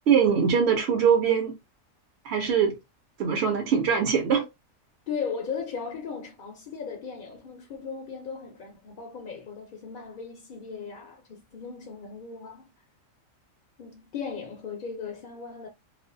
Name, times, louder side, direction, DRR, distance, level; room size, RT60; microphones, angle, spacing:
voice 1, 0.1-1.6 2.2-2.8 3.2-4.5, right 7 dB, 65° right, 0.7 m, -22 dB
voice 2, 5.1-12.7 13.8-15.7, left 6 dB, 60° left, 0.5 m, -37 dB
2.4 x 2.2 x 2.5 m
omnidirectional pair, 1.4 m